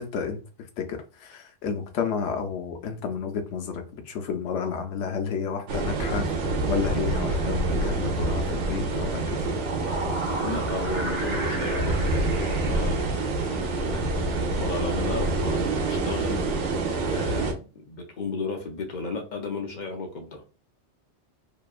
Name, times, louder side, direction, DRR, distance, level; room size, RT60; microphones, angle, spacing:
voice 1, 0.0-9.6, left 6 dB, 75° left, 0.9 m, -31 dB
sound 1, 5.7-17.5, right 2 dB, 85° right, 1.0 m, -27 dB
sound 2, 9.4-13.8, right 2 dB, 35° right, 0.5 m, -36 dB
voice 2, 10.4-16.4 16.7-20.5, left 3 dB, 55° left, 0.5 m, -34 dB
2.8 x 2.3 x 2.3 m
omnidirectional pair, 1.2 m